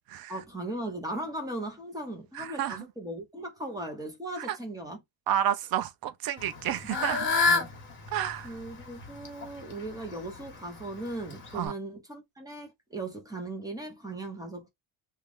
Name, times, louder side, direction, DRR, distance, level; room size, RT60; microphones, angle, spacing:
voice 1, 0.3-5.0 7.5-7.7 8.4-14.7, right 1 dB, 5° right, 0.8 m, -38 dB
voice 2, 2.3-2.8 4.4-4.6 5.3-7.3 8.1-8.6 11.5-11.7, right 11 dB, 50° right, 0.5 m, -30 dB
Fowl / Bird, 6.4-11.7, left 4 dB, 25° left, 1.2 m, -31 dB
2.9 x 2.5 x 3.5 m
cardioid pair, 155°, 49 cm